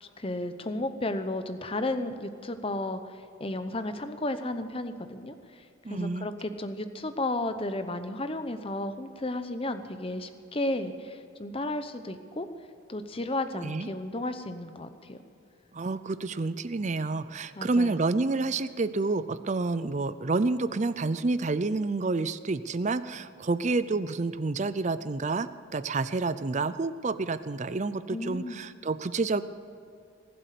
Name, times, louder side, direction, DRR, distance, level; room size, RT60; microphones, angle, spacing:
voice 1, 0.0-12.5 12.9-15.2 17.6-18.0 28.1-28.6, left 2 dB, 25° left, 10 dB, 0.8 m, -33 dB
voice 2, 5.8-6.3 13.5-13.9 15.7-29.4, right 3 dB, 35° right, 14 dB, 0.5 m, -29 dB
19.5 x 7.8 x 8.3 m, 2.4 s
head